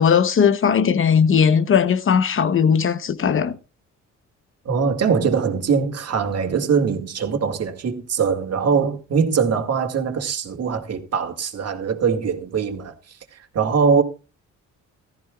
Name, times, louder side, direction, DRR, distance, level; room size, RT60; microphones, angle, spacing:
voice 1, 0.0-3.6, left 7 dB, 45° left, 1.0 m, -18 dB
voice 2, 4.7-12.9 13.3-14.0, right 6 dB, 55° right, 2.2 m, -22 dB
16.0 x 13.5 x 2.4 m
cardioid pair, 90°, 30 cm